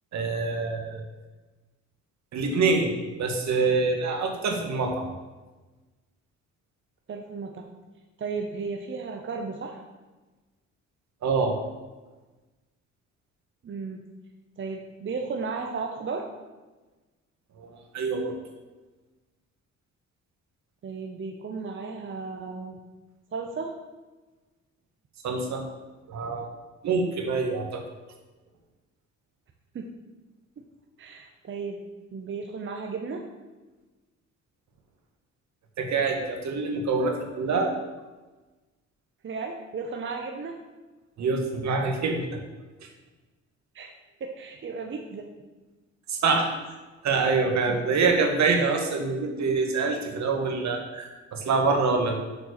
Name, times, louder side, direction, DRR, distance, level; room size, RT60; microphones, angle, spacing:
voice 1, 0.1-1.0 2.3-5.1 11.2-11.5 17.6-18.3 25.2-25.6 26.1-26.5 26.8-27.8 35.8-37.7 41.2-42.3 46.1-46.5 47.0-52.2, right 4 dB, 65° right, 3 dB, 1.5 m, -25 dB
voice 2, 7.1-7.7 8.2-9.8 13.6-14.0 14.6-16.3 20.8-22.8 23.3-23.7 29.7-29.9 31.0-31.8 32.1-33.2 39.2-40.6 43.7-43.9 44.2-45.3 47.7-47.8, right 4 dB, 40° right, 2 dB, 0.8 m, -34 dB
6.9 x 4.5 x 6.4 m, 1.2 s
cardioid pair, 90°, 30 cm